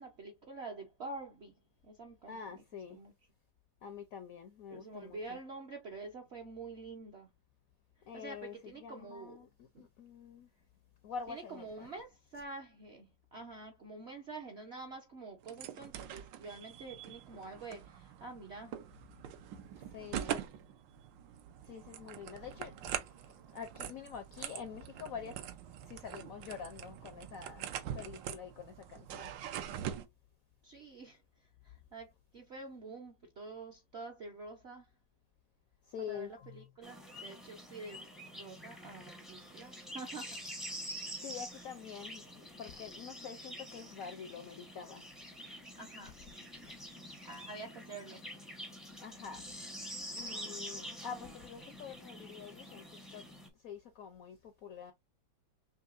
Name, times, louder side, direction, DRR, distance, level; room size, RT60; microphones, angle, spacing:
voice 1, 0.0-1.5 1.8-2.4 2.9-3.1 4.7-7.3 8.1-9.4 9.7-9.9 11.3-18.8 30.6-31.2 31.6-34.9 36.1-40.4 45.7-46.2 47.2-48.3, right 3 dB, 60° right, 0.7 m, -47 dB
voice 2, 2.3-3.0 3.8-5.4 8.1-10.5 11.0-11.9 19.9-20.4 21.7-25.4 25.9-29.3 35.9-36.7 41.2-45.0 46.6-46.8 49.0-49.6 50.1-52.8 53.1-53.2 53.6-54.9, left 7 dB, 75° left, 0.8 m, -46 dB
sound 1, 15.4-30.1, right 10 dB, 75° right, 1.3 m, -44 dB
sound 2, 36.8-53.5, equal, ahead, 0.4 m, -47 dB
5.7 x 2.8 x 2.4 m
omnidirectional pair, 2.0 m